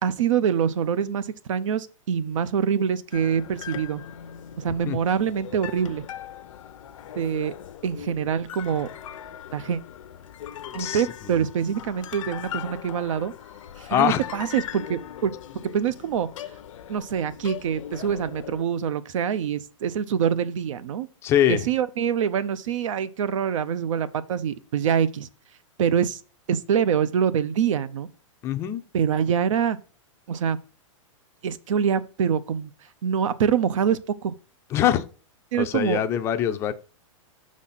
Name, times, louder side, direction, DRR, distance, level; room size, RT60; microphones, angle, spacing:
voice 1, 0.0-4.0 4.6-6.1 7.1-7.5 7.8-8.9 9.5-9.8 10.7-13.3 13.8-15.3 15.7-16.3 16.9-21.1 21.5-25.3 25.8-26.2 26.5-28.1 28.9-29.8 30.3-30.6 31.4-32.7 33.0-34.3 35.5-36.0, right 8 dB, 70° right, 0.6 m, -25 dB
sound 1, 3.1-18.6, left 10 dB, 75° left, 0.6 m, -40 dB
voice 2, 10.8-11.4 13.9-14.2 21.2-21.6 28.4-28.8 34.7-35.0 35.6-36.7, left 11 dB, 15° left, 0.4 m, -23 dB
6.2 x 4.2 x 5.7 m
supercardioid pair, 165°, 17 cm